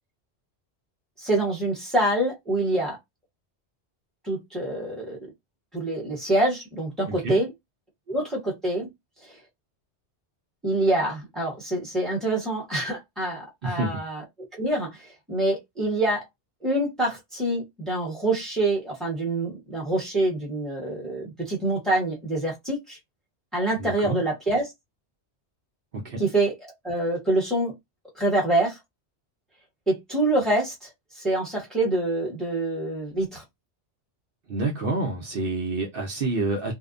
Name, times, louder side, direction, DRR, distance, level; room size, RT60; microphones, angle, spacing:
voice 1, 1.2-3.0 4.2-5.2 5.7-7.5 8.1-8.9 10.6-14.2 14.6-16.2 16.6-23.0 23.5-24.7 26.2-27.7 28.1-28.8 29.9-30.9 31.2-33.4, right 1 dB, ahead, 0.9 m, -26 dB
voice 2, 13.6-14.0 23.8-24.2 25.9-26.2 34.5-36.8, right 2 dB, 60° right, 0.8 m, -28 dB
2.7 x 2.1 x 2.4 m
omnidirectional pair, 1.2 m